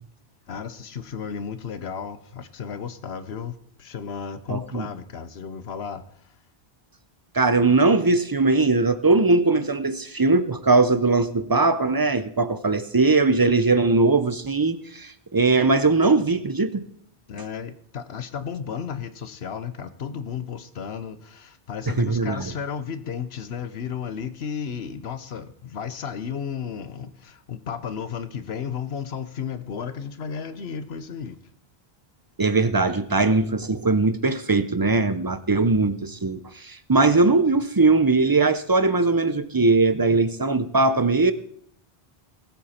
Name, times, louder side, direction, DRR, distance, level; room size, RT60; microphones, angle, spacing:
voice 1, 0.5-6.0 17.3-31.4, left 7 dB, 90° left, 12 dB, 1.2 m, -33 dB
voice 2, 4.5-4.9 7.3-16.8 21.9-22.5 32.4-41.3, right 3 dB, 25° right, 12 dB, 0.6 m, -20 dB
19.5 x 8.0 x 4.3 m, 0.67 s
omnidirectional pair, 1.0 m